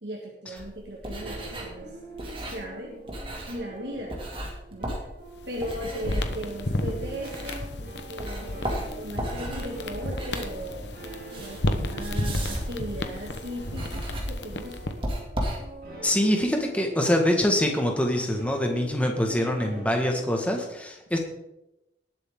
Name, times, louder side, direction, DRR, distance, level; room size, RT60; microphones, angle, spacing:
voice 1, 0.0-2.0 2.5-3.0 3.5-4.2 4.7-5.0 5.5-7.7 8.1-10.9 11.4-15.0, equal, 75° right, -1 dB, 1.9 m, -37 dB
sound 1, 0.6-7.9 8.2-16.0, equal, 30° right, 2.5 m, -35 dB
sound 2, 1.1-20.7, right 2 dB, 55° right, 5.0 m, -45 dB
sound 3, 5.3-15.1, left 1 dB, 85° left, 1.1 m, -33 dB
voice 2, 16.0-21.2, left 1 dB, 10° left, 2 dB, 1.6 m, -24 dB
19.0 x 7.9 x 3.8 m, 0.89 s
head